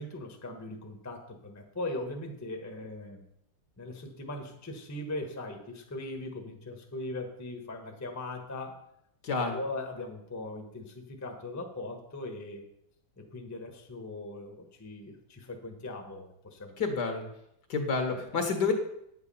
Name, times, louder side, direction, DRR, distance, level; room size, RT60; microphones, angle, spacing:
voice 1, 0.0-3.2 3.8-8.8 9.5-12.7 13.2-16.8, left 2 dB, 10° left, 3 dB, 1.0 m, -39 dB
voice 2, 9.2-9.6 16.8-17.3 17.7-18.7, left 4 dB, 60° left, 5 dB, 2.0 m, -29 dB
9.5 x 8.2 x 5.5 m, 0.76 s
omnidirectional pair, 2.0 m